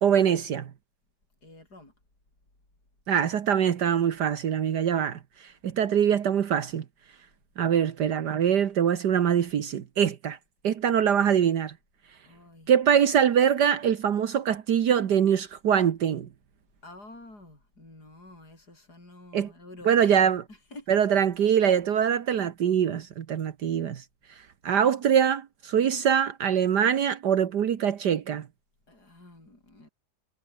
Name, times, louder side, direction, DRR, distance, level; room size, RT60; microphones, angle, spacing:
voice 1, 0.0-0.7 3.1-6.8 7.6-10.4 10.6-11.7 12.7-16.3 19.3-19.5 19.9-20.4 20.9-24.0 24.6-28.5, right 8 dB, 70° right, 1.8 m, -23 dB
voice 2, 1.4-1.9 12.3-12.7 16.8-20.9 28.9-29.9, left 2 dB, 60° left, 8.3 m, -48 dB
omnidirectional pair, 1.9 m